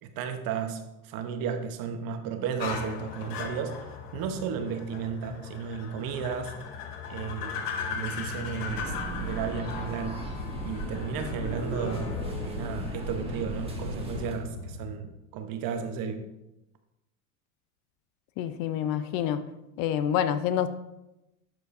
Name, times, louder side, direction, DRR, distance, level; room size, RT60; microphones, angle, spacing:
voice 1, 0.0-3.7 4.1-6.5 7.1-10.2 10.6-16.2, right 6 dB, 50° right, 7 dB, 1.0 m, -34 dB
sound 1, 2.6-15.0, left 6 dB, 80° left, 1.0 m, -38 dB
sound 2, 8.7-14.3, right 1 dB, 15° right, 1.6 m, -37 dB
voice 2, 18.4-19.4 19.8-20.7, left 10 dB, 50° left, 12 dB, 0.6 m, -27 dB
11.5 x 4.8 x 2.6 m, 0.91 s
hypercardioid pair, 90°, 44 cm